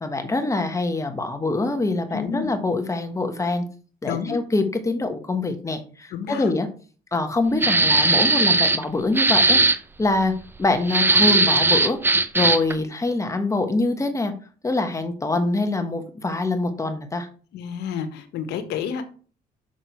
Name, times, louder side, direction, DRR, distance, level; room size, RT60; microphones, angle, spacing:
voice 1, 0.0-3.7 4.0-6.7 7.1-9.6 10.0-12.0 12.3-14.3 14.6-17.3, left 2 dB, 20° left, 7 dB, 1.4 m, -24 dB
voice 2, 2.1-2.5 4.0-4.4 6.1-6.5 17.5-19.0, left 7 dB, 80° left, 8 dB, 1.5 m, -30 dB
sound 1, 7.6-8.8 9.2-9.8 10.9-12.7, right 3 dB, 15° right, 0.6 m, -18 dB
6.5 x 6.4 x 4.6 m, 0.39 s
cardioid pair, 110°, 17 cm